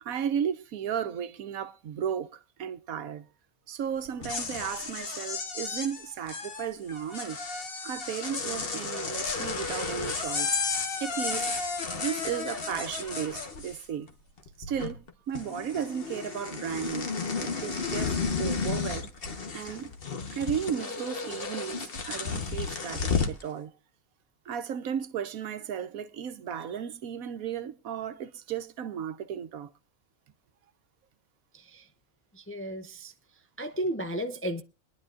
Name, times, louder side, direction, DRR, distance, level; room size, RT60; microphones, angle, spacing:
voice 1, 0.0-3.3 3.7-7.4 7.8-10.5 11.0-11.5 11.9-14.1 14.6-15.0 15.3-17.1 17.4-19.1 19.5-19.9 20.3-23.7 24.4-29.7, right 8 dB, 80° right, 1.3 m, -34 dB
sound 1, 4.1-14.1 14.4-15.1 15.3-23.4, left 4 dB, 45° left, 1.3 m, -33 dB
voice 2, 31.5-31.9 32.3-33.1 33.6-34.6, equal, 20° left, 0.3 m, -34 dB
24.0 x 10.5 x 2.5 m
omnidirectional pair, 1.5 m